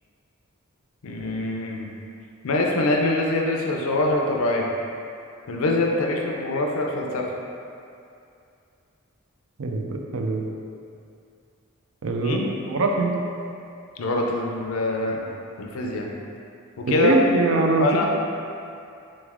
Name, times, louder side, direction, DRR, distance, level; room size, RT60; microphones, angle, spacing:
voice 1, 1.0-1.9 2.4-4.7 5.5-7.3 12.2-12.5 14.0-15.3 15.6-16.1 16.8-17.2 17.8-18.1, left 2 dB, 75° left, 0 dB, 0.5 m, -24 dB
voice 2, 9.6-10.5 12.0-12.4 12.7-13.1 16.9-18.1, right 2 dB, 75° right, 2 dB, 0.4 m, -23 dB
3.9 x 3.2 x 3.5 m, 2.5 s
head